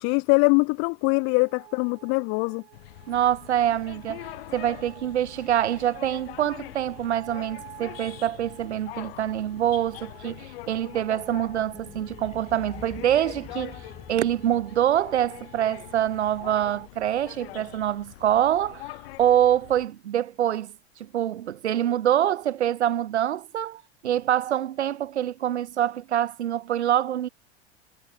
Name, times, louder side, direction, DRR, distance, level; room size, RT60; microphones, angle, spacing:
voice 1, 0.0-2.6, left 33 dB, 40° left, 0.5 m, -22 dB
sound 1, 1.1-16.9, right 14 dB, 65° right, 5.1 m, -51 dB
sound 2, 2.7-19.9, left 19 dB, 60° left, 3.2 m, -44 dB
voice 2, 3.1-13.8 14.1-18.8 19.2-20.7 21.0-27.3, right 11 dB, 80° right, 0.7 m, -25 dB
sound 3, 11.0-15.1, left 6 dB, 20° left, 5.8 m, -47 dB
hypercardioid pair, 90°, 33 cm